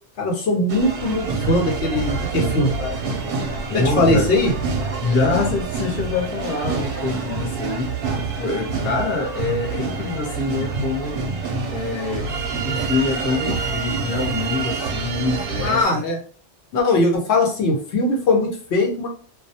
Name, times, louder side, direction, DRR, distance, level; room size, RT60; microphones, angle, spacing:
voice 1, 0.2-3.0 3.7-4.5 15.6-16.2 16.7-19.1, left 2 dB, 85° left, 1 dB, 1.0 m, -20 dB
sound 1, 0.7-15.8, right 4 dB, 65° right, 0.7 m, -27 dB
voice 2, 3.7-4.3 5.0-8.0 8.4-11.2 11.7-12.3 12.6-16.0, left 3 dB, 20° left, 0 dB, 0.3 m, -25 dB
2.3 x 2.2 x 2.7 m, 0.43 s
omnidirectional pair, 1.1 m